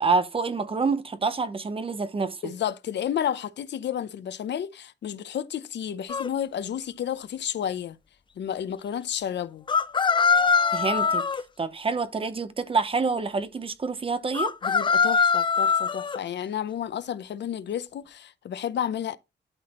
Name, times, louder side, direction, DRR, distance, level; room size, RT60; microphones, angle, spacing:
voice 1, 0.0-2.5 10.7-11.3 11.6-14.5, right 4 dB, 30° right, 0.8 m, -27 dB
voice 2, 2.4-8.0 8.4-9.6 14.6-19.2, left 9 dB, 75° left, 0.6 m, -31 dB
sound 1, 6.1-6.3 9.7-11.4 14.3-16.2, left 5 dB, 25° left, 0.4 m, -22 dB
12.0 x 5.8 x 3.0 m
wide cardioid pair, 170°, 18 cm